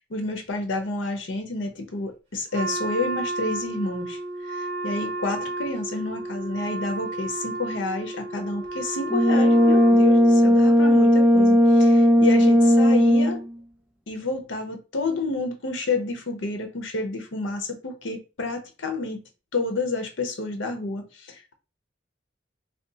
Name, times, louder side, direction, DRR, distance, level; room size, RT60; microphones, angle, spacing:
voice 1, 0.0-13.4 14.1-19.2 19.5-21.5, left 3 dB, 85° left, 0.7 m, -30 dB
Wind instrument woodwind instrument, 2.5-10.4, right 2 dB, 30° right, 1.1 m, -32 dB
Brass instrument, 9.1-13.5, equal, 5° right, 0.3 m, -16 dB
2.5 x 2.3 x 3.8 m
head